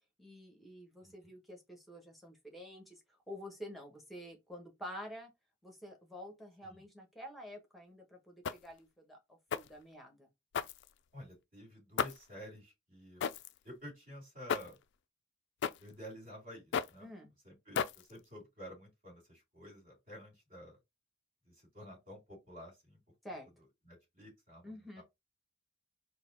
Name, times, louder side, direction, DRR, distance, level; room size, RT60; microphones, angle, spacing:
voice 1, 0.2-5.3 5.6-9.2 9.5-10.3 17.0-17.3 23.2-23.5 24.6-25.0, equal, ahead, 1.0 m, -49 dB
sound 1, 8.4-8.8 9.5-9.8 10.5-11.2 12.0-12.4 13.2-13.6 14.5-14.8 15.6-15.9 16.7-17.1 17.7-18.2, left 7 dB, 60° left, 0.3 m, -36 dB
voice 2, 11.1-13.2 13.6-14.8 15.8-17.1 17.4-20.8 21.4-23.0 23.9-25.0, equal, 40° right, 2.4 m, -51 dB
4.1 x 2.3 x 3.8 m
head